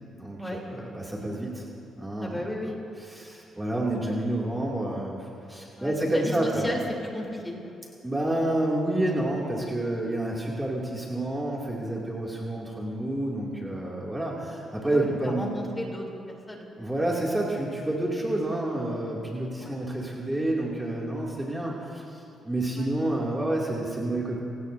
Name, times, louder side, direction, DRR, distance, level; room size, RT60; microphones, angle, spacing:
voice 1, 0.2-1.7 2.0-2.4 3.0-6.7 8.0-15.5 16.8-24.4, right 1 dB, 10° right, -4 dB, 2.6 m, -29 dB
voice 2, 2.2-2.8 5.8-6.8 7.1-7.7 14.9-16.0 16.5-16.9 19.6-19.7 22.8-22.9, left 1 dB, 15° left, 0 dB, 3.4 m, -34 dB
27.5 x 17.5 x 2.7 m, 2.6 s
cardioid pair, 90°, 0 cm